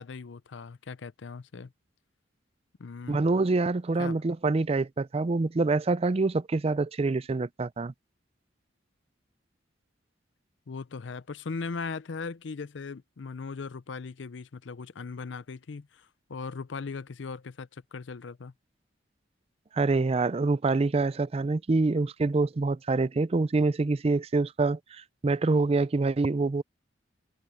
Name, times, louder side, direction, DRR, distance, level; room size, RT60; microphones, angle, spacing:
voice 1, 0.0-1.7 2.8-3.2 4.0-4.2 10.7-18.5, left 4 dB, 70° left, 0.5 m, -39 dB
voice 2, 3.1-7.9 19.7-26.6, right 3 dB, 30° right, 0.4 m, -26 dB
head